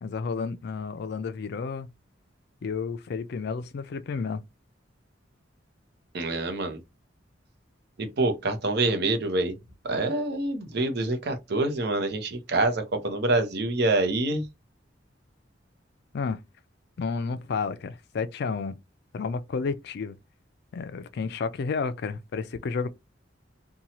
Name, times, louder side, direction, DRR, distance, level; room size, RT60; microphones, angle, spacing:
voice 1, 0.0-1.9 2.6-4.4 16.1-16.4 17.0-18.8 19.1-20.1 20.7-22.9, left 5 dB, 60° left, 0.4 m, -31 dB
voice 2, 6.1-6.8 8.0-9.6 9.8-14.4, right 2 dB, 60° right, 0.7 m, -26 dB
2.8 x 2.3 x 2.9 m
head